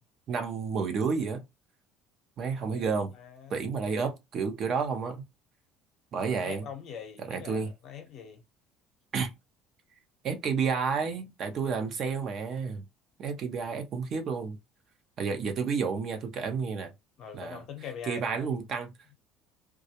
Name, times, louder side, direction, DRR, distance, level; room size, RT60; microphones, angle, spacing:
voice 1, 0.3-1.4 2.4-3.1 3.5-5.2 6.1-6.7 7.2-7.7 9.1-9.3 10.2-12.8 13.2-14.6 15.2-16.9 17.3-17.6 18.0-18.9, right 5 dB, 45° right, 0.6 m, -30 dB
voice 2, 2.7-3.5 6.2-8.4 17.2-18.5, left 7 dB, 55° left, 0.7 m, -43 dB
2.3 x 2.0 x 2.8 m
cardioid pair, 125°, 0 cm